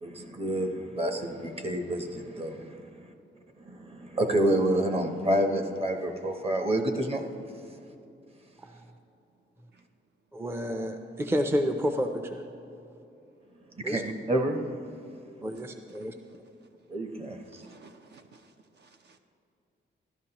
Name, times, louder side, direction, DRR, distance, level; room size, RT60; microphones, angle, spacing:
voice 1, 0.0-3.1 3.6-7.2 13.7-14.6 16.9-17.6, right 1 dB, 30° right, 0.9 m, -28 dB
voice 2, 10.3-12.4 13.8-14.0 15.4-16.2, equal, 10° right, 0.5 m, -30 dB
voice 3, 17.5-19.2, right 4 dB, 60° right, 0.6 m, -56 dB
13.0 x 12.0 x 2.9 m
wide cardioid pair, 120°, 20 cm